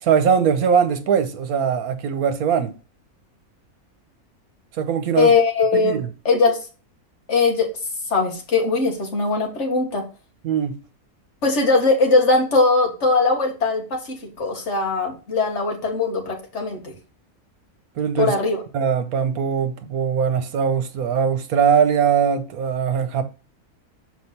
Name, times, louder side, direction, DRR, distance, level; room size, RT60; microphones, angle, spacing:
voice 1, 0.0-2.7 4.7-5.3 5.7-6.1 10.4-10.8 18.0-18.3 18.7-23.2, right 7 dB, 80° right, 1.3 m, -21 dB
voice 2, 5.2-6.6 7.3-7.7 8.1-10.0 11.4-16.9 18.2-18.6, left 3 dB, 50° left, 1.9 m, -20 dB
6.5 x 4.4 x 4.2 m
omnidirectional pair, 1.5 m